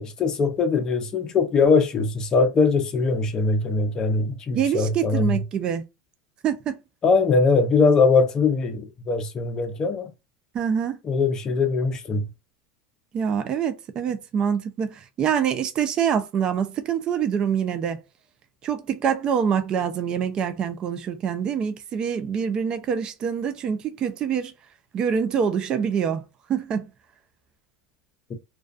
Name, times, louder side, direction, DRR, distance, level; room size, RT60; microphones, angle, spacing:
voice 1, 0.0-5.4 7.0-10.1 11.0-12.3, left 4 dB, 30° left, 0.6 m, -21 dB
voice 2, 4.5-5.8 6.4-6.8 10.5-11.0 13.1-18.0 18.6-24.5 24.9-26.2 26.5-26.9, right 7 dB, 35° right, 0.4 m, -25 dB
2.3 x 2.2 x 2.4 m
supercardioid pair, 120°, 2 cm